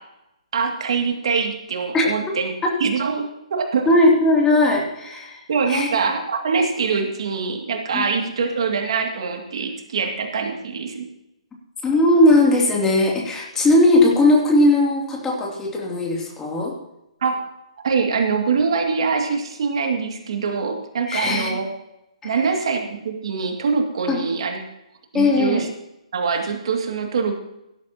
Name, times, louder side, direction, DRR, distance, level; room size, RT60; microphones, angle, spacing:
voice 1, 0.5-2.5 2.8-3.9 5.5-11.1 17.2-17.4 17.8-21.7 22.2-24.6 25.1-25.7 26.1-27.4, right 5 dB, 55° right, 3 dB, 2.5 m, -23 dB
voice 2, 3.9-5.4 5.7-5.9 7.9-8.0 11.8-16.7 21.1-21.5 22.2-22.3 24.1-24.2 25.1-25.6, left 1 dB, 10° left, -2 dB, 3.0 m, -18 dB
17.0 x 12.5 x 3.0 m, 0.87 s
figure-of-eight pair, 135°, 3 cm